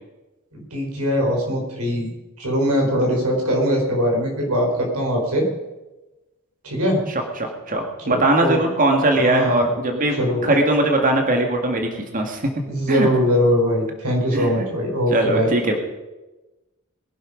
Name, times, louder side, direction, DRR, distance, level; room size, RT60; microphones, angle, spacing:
voice 1, 0.5-2.1 2.4-5.5 6.6-7.0 8.0-8.6 9.1-9.7 10.2-10.5 12.6-15.5, equal, 85° right, 0 dB, 4.8 m, -21 dB
voice 2, 7.4-12.4 12.9-13.1 14.3-14.8 15.1-15.8, right 2 dB, 40° right, 3 dB, 2.0 m, -20 dB
22.0 x 11.0 x 5.1 m, 1.1 s
head